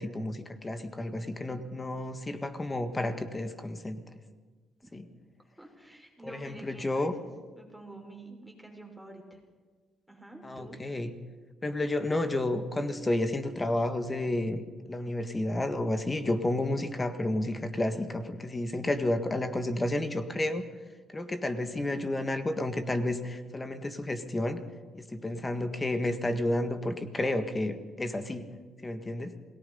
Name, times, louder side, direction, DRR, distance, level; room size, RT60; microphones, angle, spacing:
voice 1, 0.0-4.0 4.9-5.0 6.2-7.1 10.4-11.1 11.6-20.6 21.1-24.6 24.9-28.5 28.8-29.3, left 1 dB, 25° left, 9 dB, 1.6 m, -31 dB
voice 2, 5.6-7.3 7.6-9.4 10.1-10.8 25.2-25.6, right 1 dB, ahead, 1 dB, 5.6 m, -48 dB
27.5 x 18.5 x 5.5 m, 1.4 s
supercardioid pair, 70°, 0 cm